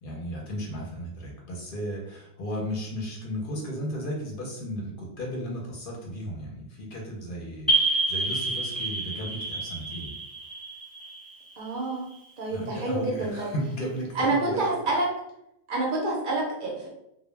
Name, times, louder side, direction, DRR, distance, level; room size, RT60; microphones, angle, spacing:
voice 1, 0.0-10.1 12.5-14.7, equal, 60° left, -2 dB, 0.7 m, -35 dB
sound 1, 7.7-12.1, right 2 dB, ahead, 0.4 m, -28 dB
voice 2, 11.6-12.1 12.4-13.5 14.1-15.1 15.7-16.9, right 2 dB, 60° right, -2 dB, 0.7 m, -27 dB
2.1 x 2.0 x 3.1 m, 0.80 s
omnidirectional pair, 1.1 m